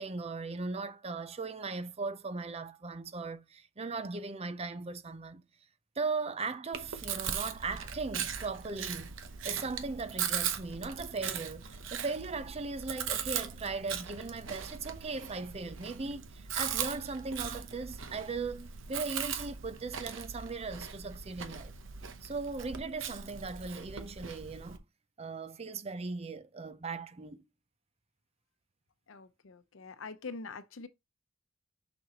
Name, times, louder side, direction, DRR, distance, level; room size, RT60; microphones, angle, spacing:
voice 1, 0.0-5.4 6.0-9.1 9.4-21.7 22.2-24.8 25.2-27.4, right 4 dB, 30° right, 0.6 m, -38 dB
Chewing mastication, 6.7-24.8, right 8 dB, 75° right, 0.8 m, -39 dB
voice 2, 29.1-30.9, left 4 dB, 75° left, 0.7 m, -44 dB
6.6 x 6.1 x 2.9 m
head